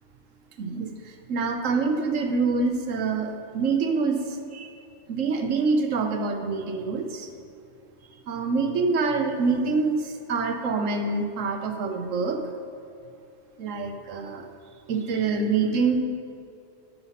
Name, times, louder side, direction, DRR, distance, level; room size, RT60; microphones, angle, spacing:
voice 1, 0.6-0.9 1.3-4.2 4.5-4.7 5.1-7.3 8.3-12.4 13.6-14.5 14.9-16.0, right 4 dB, 90° right, 6 dB, 1.2 m, -25 dB
12.5 x 5.8 x 5.6 m, 2.5 s
omnidirectional pair, 1.3 m